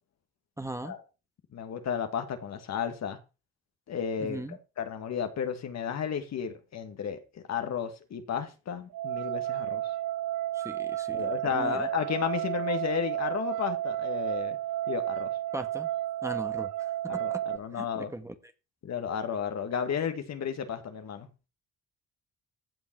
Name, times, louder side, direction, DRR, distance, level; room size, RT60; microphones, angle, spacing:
voice 1, 0.6-0.9 4.2-4.6 10.5-11.9 15.5-15.9 16.2-17.4 17.7-18.3, right 1 dB, 10° right, 1.4 m, -39 dB
voice 2, 1.5-3.2 3.9-4.4 4.8-9.8 11.1-14.6 14.9-15.3 17.1-18.1 18.8-21.3, left 7 dB, 60° left, 1.9 m, -33 dB
sound 1, 8.9-17.6, right 14 dB, 75° right, 0.8 m, -32 dB
15.5 x 5.4 x 4.5 m
cardioid pair, 90°, 30 cm